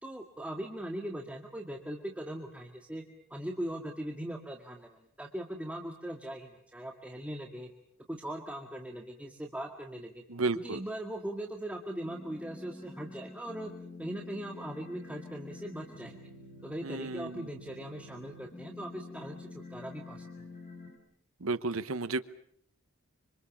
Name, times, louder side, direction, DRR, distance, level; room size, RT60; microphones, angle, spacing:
voice 1, 0.0-3.0 3.3-7.7 8.1-10.2 10.6-13.7 14.0-16.2 16.6-20.5, right 1 dB, 5° right, 1 dB, 1.9 m, -40 dB
voice 2, 10.3-10.8 16.8-17.5 21.4-22.2, right 3 dB, 80° right, 13 dB, 1.0 m, -32 dB
sound 1, 12.0-21.0, left 2 dB, 40° left, 6.4 m, -48 dB
26.0 x 26.0 x 7.3 m, 0.67 s
head